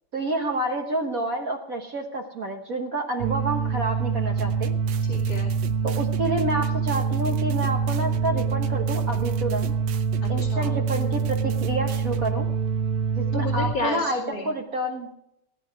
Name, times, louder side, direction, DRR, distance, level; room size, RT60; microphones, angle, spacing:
voice 1, 0.1-4.7 5.8-9.7 10.3-12.5 13.2-15.1, right 2 dB, 45° right, 2 dB, 1.5 m, -29 dB
sound 1, 3.2-13.7, right 5 dB, 85° right, 1.6 m, -25 dB
sound 2, 4.4-12.4, right 9 dB, 65° right, 1.5 m, -41 dB
voice 2, 5.0-5.5 10.2-10.7 13.3-14.5, left 3 dB, 60° left, -5 dB, 3.1 m, -32 dB
18.0 x 10.5 x 4.6 m, 0.79 s
omnidirectional pair, 2.3 m